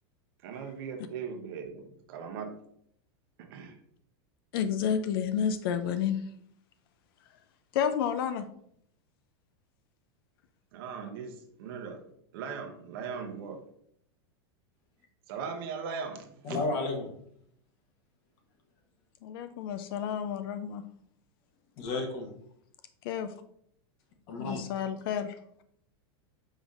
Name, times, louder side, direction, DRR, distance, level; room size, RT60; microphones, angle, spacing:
voice 1, 0.4-2.6 3.4-3.8 10.7-12.0 12.3-13.6 15.3-16.6, right 6 dB, 60° right, 5 dB, 0.8 m, -39 dB
voice 2, 4.5-6.2 7.7-8.5 19.2-20.8 23.0-23.3 24.4-25.4, left 8 dB, 60° left, 10 dB, 0.4 m, -30 dB
voice 3, 16.4-17.1 21.8-22.3 24.3-24.7, left 3 dB, 45° left, 2 dB, 1.0 m, -32 dB
5.0 x 3.9 x 2.4 m, 0.69 s
supercardioid pair, 155°, 14 cm